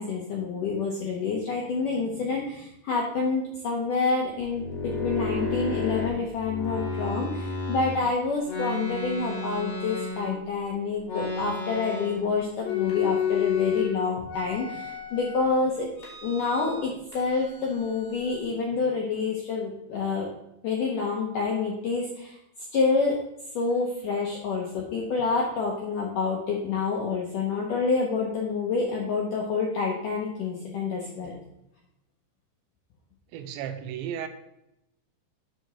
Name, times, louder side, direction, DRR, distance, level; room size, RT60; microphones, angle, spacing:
voice 1, 0.0-15.9 16.2-20.3 20.6-22.3 22.7-23.2 23.6-31.3, left 4 dB, 75° left, 1.9 m, -28 dB
sound 1, 4.4-8.0 8.4-10.6 11.0-12.3 12.6-13.9 14.3-15.4 16.0-16.9 17.1-18.3, left 5 dB, 50° left, 4.2 m, -31 dB
voice 2, 33.3-34.3, right 9 dB, 85° right, 2.8 m, -34 dB
7.9 x 5.3 x 6.8 m
omnidirectional pair, 5.4 m